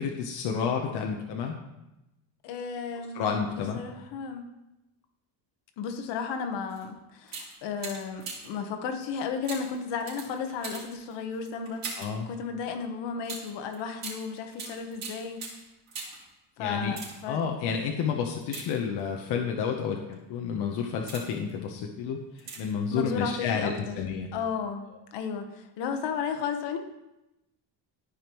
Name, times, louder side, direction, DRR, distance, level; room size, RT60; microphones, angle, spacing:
voice 1, 0.0-1.6 3.1-3.8 12.0-12.3 16.6-16.9 17.3-24.3, left 6 dB, 70° left, 1 dB, 0.9 m, -30 dB
voice 2, 2.4-3.2 3.6-4.4 5.8-15.4 16.6-17.4 22.9-24.0 24.3-26.8, left 6 dB, 85° left, 6 dB, 1.2 m, -34 dB
sound 1, 6.7-6.9 7.2-8.6 9.4-12.2 13.2-16.3 16.8-17.4 18.4-19.2 19.9-20.2 20.7-21.5 22.4-22.8 23.1-23.2, right 4 dB, 60° right, 3.3 m, -41 dB
13.5 x 5.3 x 3.0 m, 0.95 s
cardioid pair, 155°, 42 cm